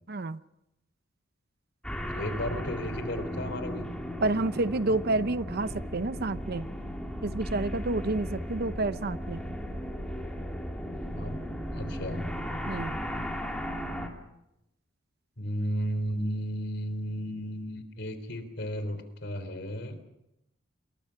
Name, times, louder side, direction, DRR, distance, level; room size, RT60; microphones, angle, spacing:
voice 1, 0.1-0.4 4.2-6.7 7.2-9.4 12.7-13.0, right 2 dB, 55° right, 14 dB, 0.8 m, -29 dB
sound 1, 1.8-14.1, equal, 5° left, 3.3 m, -36 dB
voice 2, 2.1-3.9 11.2-11.4 11.7-12.2 15.4-20.0, equal, 65° left, 10 dB, 3.7 m, -34 dB
28.0 x 22.5 x 5.8 m, 0.88 s
head